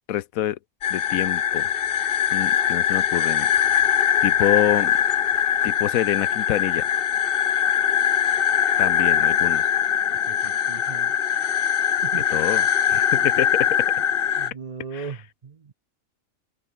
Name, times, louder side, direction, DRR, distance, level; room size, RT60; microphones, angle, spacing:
voice 1, 0.1-0.6 0.9-1.7 2.3-3.5 4.2-5.0 5.6-6.9 8.8-9.7 12.1-13.9 14.9-15.1, left 12 dB, 90° left, 1.2 m, -26 dB
sound 1, 0.8-14.5, left 9 dB, 50° left, 0.8 m, -22 dB
voice 2, 10.3-11.2 12.0-12.2 14.4-15.7, right 5 dB, 40° right, 0.6 m, -37 dB
open air
omnidirectional pair, 1.4 m